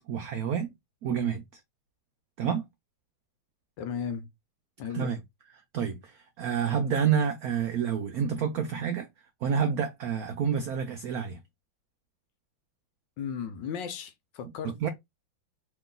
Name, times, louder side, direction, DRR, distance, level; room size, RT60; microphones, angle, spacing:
voice 1, 0.1-0.7 1.0-1.4 2.4-2.7 4.9-5.2 5.7-9.1 9.4-11.4 14.6-14.9, right 7 dB, 85° right, 0.8 m, -28 dB
voice 2, 3.8-4.3 4.8-5.1 13.2-14.9, left 7 dB, 70° left, 1.3 m, -35 dB
3.0 x 3.0 x 3.7 m
omnidirectional pair, 2.2 m